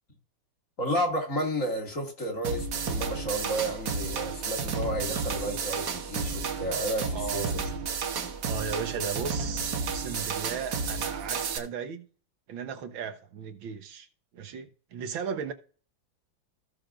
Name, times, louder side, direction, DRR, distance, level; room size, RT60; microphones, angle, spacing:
voice 1, 0.8-7.7, equal, 40° left, 2.8 m, -32 dB
sound 1, 2.4-11.6, right 5 dB, 60° right, 1.8 m, -32 dB
voice 2, 7.1-7.7 8.5-12.1 12.5-14.1 14.3-15.5, right 7 dB, 90° right, 2.0 m, -36 dB
16.0 x 6.6 x 2.6 m
omnidirectional pair, 2.1 m